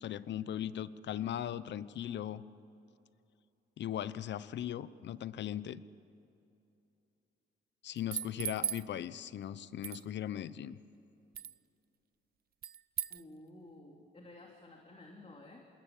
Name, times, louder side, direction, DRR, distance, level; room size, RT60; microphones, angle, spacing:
voice 1, 0.0-2.4 3.8-5.8 7.8-10.8, left 10 dB, 65° left, 16 dB, 0.9 m, -38 dB
sound 1, 8.0-8.9 9.8-10.0 11.4-11.6 12.6-13.2, right 9 dB, 50° right, 0.6 m, -37 dB
voice 2, 13.1-15.7, left 2 dB, 30° left, 1 dB, 3.1 m, -53 dB
27.5 x 20.5 x 8.5 m, 2.8 s
cardioid pair, 90°, 20 cm